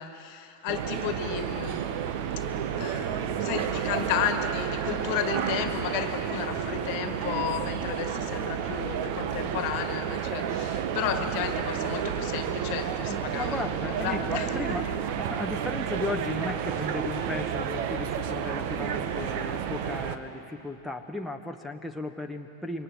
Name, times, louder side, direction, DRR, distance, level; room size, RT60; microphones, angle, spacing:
voice 1, 0.0-1.9 2.8-15.0, left 9 dB, 45° left, 8 dB, 1.7 m, -33 dB
sound 1, 0.7-20.2, right 8 dB, 45° right, 1.3 m, -31 dB
voice 2, 13.1-14.9 15.2-22.8, left 2 dB, ahead, 2 dB, 1.2 m, -35 dB
27.0 x 23.5 x 7.8 m, 2.7 s
figure-of-eight pair, 90°, 0 cm